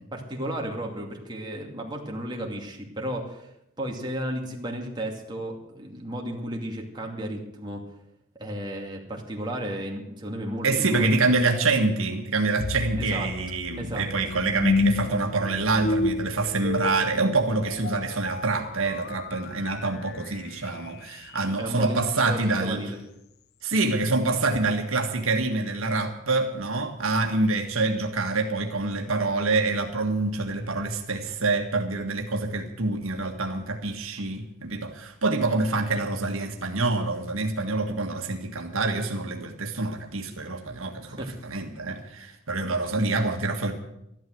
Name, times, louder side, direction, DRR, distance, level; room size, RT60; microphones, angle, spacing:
voice 1, 0.1-3.5 3.8-7.8 8.3-11.4 13.0-13.3 13.8-14.3 21.6-23.0 41.0-41.4, right 1 dB, 20° right, -1 dB, 2.5 m, -34 dB
voice 2, 10.6-22.8 23.6-43.7, right 3 dB, 75° right, 3 dB, 1.7 m, -26 dB
sound 1, 12.6-21.7, left 3 dB, 50° left, 0.5 m, -31 dB
13.5 x 11.5 x 7.8 m, 0.81 s
head